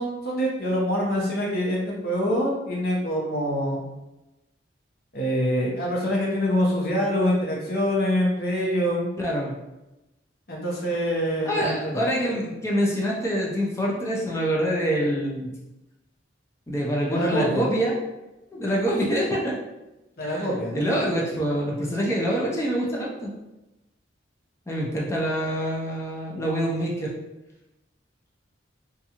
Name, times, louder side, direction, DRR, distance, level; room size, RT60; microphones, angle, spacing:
voice 1, 0.0-3.8 5.1-9.1 10.5-12.0 17.1-17.7 20.2-20.8, equal, 50° left, -3 dB, 0.8 m, -25 dB
voice 2, 9.2-9.5 11.4-15.5 16.7-18.0 18.5-19.6 20.2-20.5 20.7-23.3 24.7-27.1, equal, 15° left, -4 dB, 0.4 m, -25 dB
2.6 x 2.3 x 2.8 m, 0.98 s
head